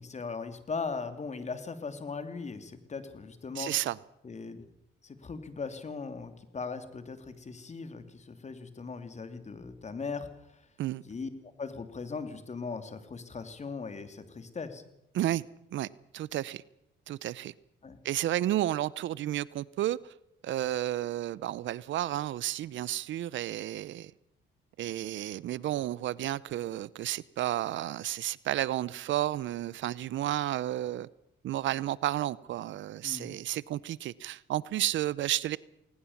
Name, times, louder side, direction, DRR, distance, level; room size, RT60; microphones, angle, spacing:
voice 1, 0.0-3.7 4.2-4.7 5.0-10.7 11.0-11.3 11.6-14.8 17.8-18.0 33.0-33.3, left 4 dB, 35° left, 9 dB, 2.8 m, -39 dB
voice 2, 3.6-4.0 10.8-11.0 15.1-15.5 15.7-15.9 16.1-16.6 17.1-17.5 18.0-20.1 20.4-24.1 24.8-31.1 31.4-35.6, right 13 dB, 75° right, 21 dB, 0.7 m, -32 dB
19.5 x 19.5 x 7.2 m, 0.82 s
cardioid pair, 90°, 20 cm